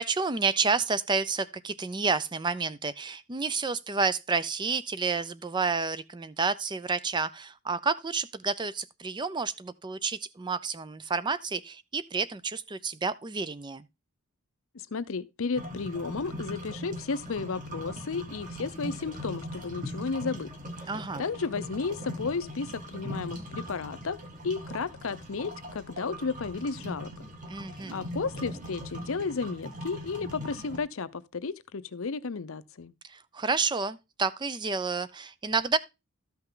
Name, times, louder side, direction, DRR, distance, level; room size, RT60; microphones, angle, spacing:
voice 1, 0.0-13.8 20.9-21.2 27.5-28.0 33.1-35.8, right 4 dB, 20° right, 0.4 m, -30 dB
voice 2, 14.7-20.5 20.8-20.9 21.2-24.2 24.4-27.1 27.9-32.9, left 4 dB, 65° left, 0.6 m, -33 dB
sound 1, 15.5-30.8, equal, 35° right, 2.0 m, -40 dB
13.0 x 5.7 x 3.7 m
head